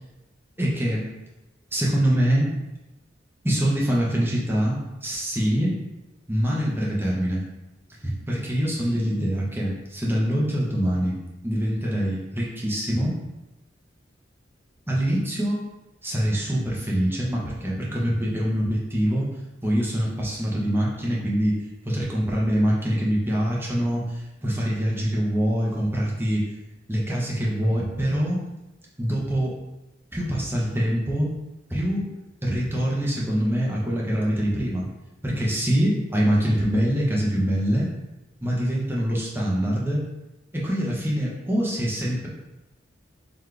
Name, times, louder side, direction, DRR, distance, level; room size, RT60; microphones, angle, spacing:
voice 1, 0.6-1.0 1.7-2.5 3.4-5.7 6.3-7.4 8.0-11.1 11.4-13.1 14.9-15.6 16.0-19.3 19.6-21.6 21.8-26.4 26.9-28.4 29.0-29.5 30.1-31.3 31.7-32.0 32.4-34.8 35.2-37.9 38.4-40.0 40.5-42.3, equal, 10° right, -4 dB, 0.9 m, -24 dB
3.9 x 3.1 x 3.3 m, 0.98 s
head